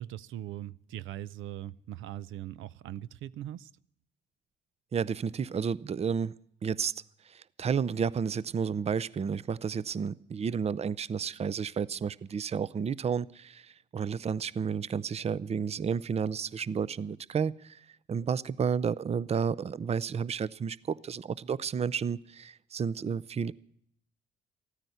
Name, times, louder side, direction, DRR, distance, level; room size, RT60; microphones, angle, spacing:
voice 1, 0.0-3.7, right 12 dB, 85° right, 18 dB, 0.5 m, -40 dB
voice 2, 4.9-6.4 6.6-6.9 7.2-23.5, right 6 dB, 30° right, 19 dB, 0.5 m, -31 dB
14.5 x 9.7 x 9.3 m, 0.68 s
cardioid pair, 90°, 20 cm